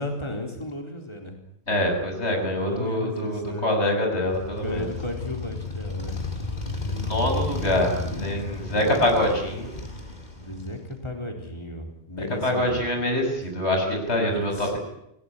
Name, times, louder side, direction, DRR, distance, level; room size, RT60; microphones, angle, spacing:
voice 1, 0.0-1.4 2.6-3.7 4.5-6.2 10.4-12.9 14.3-14.8, left 1 dB, 25° left, 2 dB, 4.0 m, -34 dB
voice 2, 1.7-4.9 6.9-9.7 12.2-14.8, left 1 dB, 90° left, 3 dB, 7.2 m, -25 dB
Motorcycle, 4.2-10.9, left 3 dB, 40° left, 2.9 m, -32 dB
29.5 x 17.0 x 9.8 m, 0.81 s
omnidirectional pair, 1.1 m